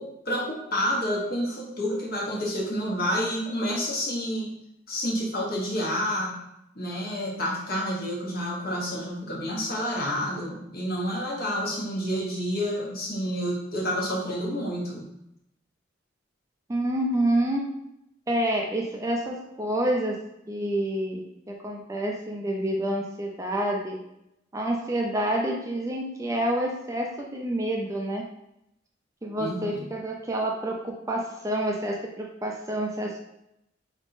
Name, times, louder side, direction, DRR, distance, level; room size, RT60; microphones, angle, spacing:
voice 1, 0.0-4.5 4.9-6.3 6.7-15.0 29.4-29.8, equal, 50° left, -3 dB, 1.1 m, -29 dB
voice 2, 16.7-17.6 18.3-20.2 20.5-24.0 24.5-28.2 29.2-33.2, right 1 dB, 15° right, -1 dB, 0.4 m, -28 dB
4.0 x 3.5 x 2.6 m, 0.81 s
head